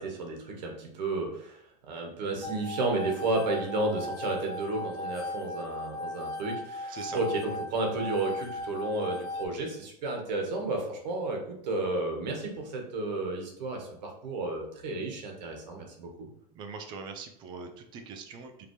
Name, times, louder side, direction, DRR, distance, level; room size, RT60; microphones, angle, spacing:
voice 1, 0.0-16.3, right 2 dB, 90° right, 1 dB, 1.5 m, -32 dB
sound 1, 2.4-9.5, left 2 dB, 65° left, 0.6 m, -37 dB
voice 2, 6.9-7.2 16.5-18.7, right 5 dB, 20° right, 6 dB, 0.4 m, -42 dB
5.0 x 2.8 x 3.2 m, 0.73 s
supercardioid pair, 170°, 21 cm